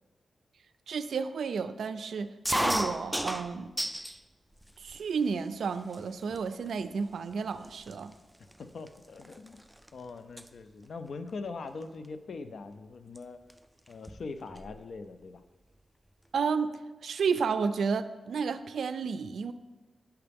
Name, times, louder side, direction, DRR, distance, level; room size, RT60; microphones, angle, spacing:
voice 1, 0.9-3.7 4.8-8.1 16.3-16.7 17.0-19.5, right 5 dB, 85° right, 11 dB, 0.3 m, -31 dB
sound 1, 2.5-4.2 4.6-5.3 5.9-6.0 6.3-6.7 7.3-7.4 7.6-9.9 10.2-10.5 11.8-12.1 13.2-13.3 13.5-13.6 13.9-14.7, right 1 dB, 5° right, 0.3 m, -33 dB
voice 2, 8.6-9.6 9.9-13.4 13.9-15.4, left 4 dB, 70° left, 10 dB, 0.4 m, -42 dB
9.5 x 5.7 x 3.4 m, 1.2 s
wide cardioid pair, 90°, 0 cm